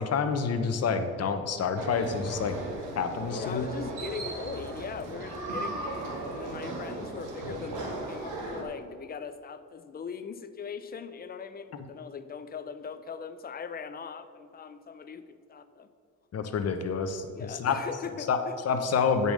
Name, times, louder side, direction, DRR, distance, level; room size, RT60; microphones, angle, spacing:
voice 1, 0.0-2.6 3.0-3.7 16.3-17.8 18.3-18.4 18.6-19.3, left 5 dB, 55° left, 8 dB, 0.9 m, -28 dB
sound 1, 1.8-8.6, right 2 dB, 85° right, 1.9 m, -37 dB
voice 2, 3.3-15.9 17.3-18.6, left 6 dB, 30° left, 11 dB, 0.6 m, -40 dB
8.8 x 5.5 x 6.3 m, 2.3 s
cardioid pair, 90°, 30 cm